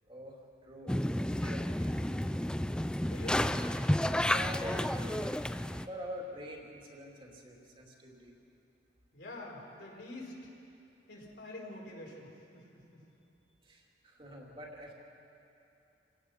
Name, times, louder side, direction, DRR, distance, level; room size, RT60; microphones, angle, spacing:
voice 1, 0.1-2.3 4.3-5.3 5.9-8.3 13.6-14.9, equal, 30° right, -1 dB, 2.9 m, -46 dB
sound 1, 0.9-5.9, left 1 dB, 5° left, 0.4 m, -31 dB
voice 2, 3.0-3.5 9.1-10.5 11.1-13.0, left 1 dB, 70° left, -3 dB, 5.1 m, -46 dB
29.0 x 17.5 x 5.9 m, 2.8 s
head